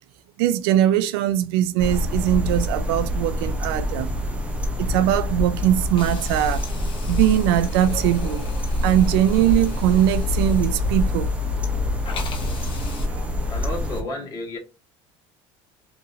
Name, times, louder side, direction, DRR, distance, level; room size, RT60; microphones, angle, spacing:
voice 1, 0.4-4.1 4.8-6.7 7.1-8.5 8.8-11.3 13.1-13.2, right 12 dB, 85° right, 0.4 m, -21 dB
sound 1, 1.8-14.0, left 1 dB, 10° right, 0.7 m, -26 dB
Hiss, 6.0-11.7 12.0-13.1, left 5 dB, 45° left, 0.9 m, -41 dB
voice 2, 13.5-14.6, left 2 dB, 30° left, 1.4 m, -32 dB
2.9 x 2.6 x 2.7 m
supercardioid pair, 120°, 12 cm